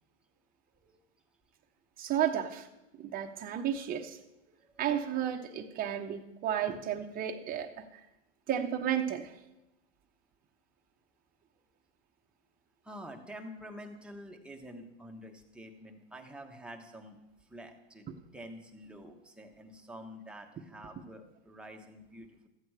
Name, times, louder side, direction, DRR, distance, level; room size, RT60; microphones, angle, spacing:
voice 1, 2.0-2.7 2.9-4.2 4.8-7.8 8.5-9.3, right 9 dB, 25° right, 3 dB, 0.9 m, -32 dB
voice 2, 12.8-17.2 17.5-18.1 18.3-22.5, equal, 5° right, 2 dB, 1.1 m, -48 dB
14.0 x 8.3 x 4.7 m, 0.94 s
hypercardioid pair, 125°, 34 cm